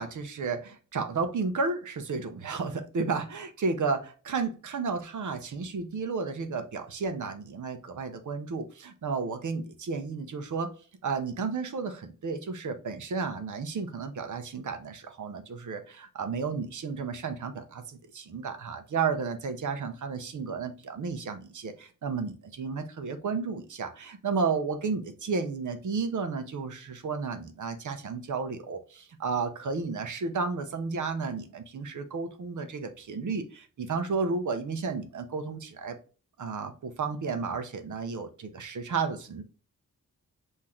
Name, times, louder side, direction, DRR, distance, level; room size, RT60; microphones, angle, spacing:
voice 1, 0.0-10.7 11.0-36.0 36.4-39.4, right 4 dB, 65° right, 7 dB, 0.7 m, -32 dB
5.7 x 2.7 x 3.0 m, 0.37 s
wide cardioid pair, 155°, 32 cm